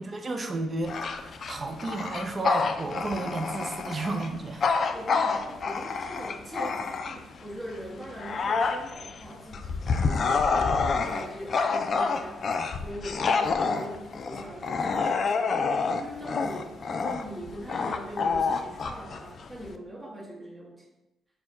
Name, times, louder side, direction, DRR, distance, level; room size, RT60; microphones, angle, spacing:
voice 1, 0.0-4.6, right 2 dB, 35° right, 5 dB, 0.5 m, -32 dB
Bark / Growling, 0.8-7.4 7.9-19.8, left 4 dB, 50° left, 0.3 m, -28 dB
voice 2, 4.8-12.5 12.8-15.7 16.0-20.8, right 1 dB, 15° right, -5 dB, 1.2 m, -41 dB
4.4 x 2.2 x 4.2 m, 0.97 s
cardioid pair, 90°, 0 cm